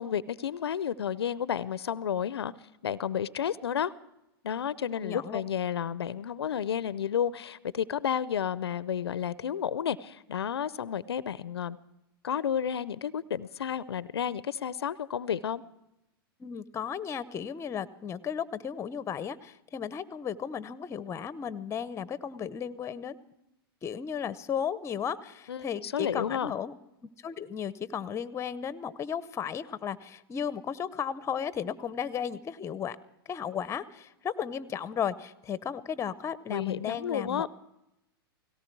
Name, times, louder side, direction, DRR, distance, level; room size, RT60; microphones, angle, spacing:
voice 1, 0.0-2.5 2.8-3.9 4.4-11.8 12.2-15.6 25.5-26.5 36.5-37.5, left 8 dB, 85° left, 19 dB, 0.5 m, -31 dB
voice 2, 5.0-5.4 16.4-23.2 23.8-26.7 27.2-33.0 33.3-37.5, left 8 dB, 20° left, 17 dB, 0.8 m, -34 dB
17.5 x 17.5 x 4.6 m, 0.89 s
hypercardioid pair, 110°, 13 cm